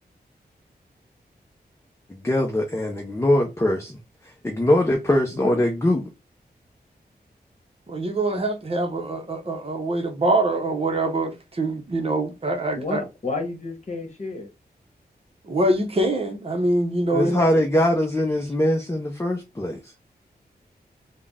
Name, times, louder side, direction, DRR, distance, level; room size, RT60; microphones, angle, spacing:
voice 1, 2.1-4.0 4.4-6.1 17.1-19.9, left 1 dB, 15° left, 0.6 m, -22 dB
voice 2, 5.3-5.6 12.7-14.5 17.1-17.6, left 3 dB, 45° left, 1.3 m, -31 dB
voice 3, 7.9-13.0 15.4-17.4, right 2 dB, 35° right, 0.7 m, -24 dB
3.7 x 2.2 x 3.5 m
wide cardioid pair, 145°, 17 cm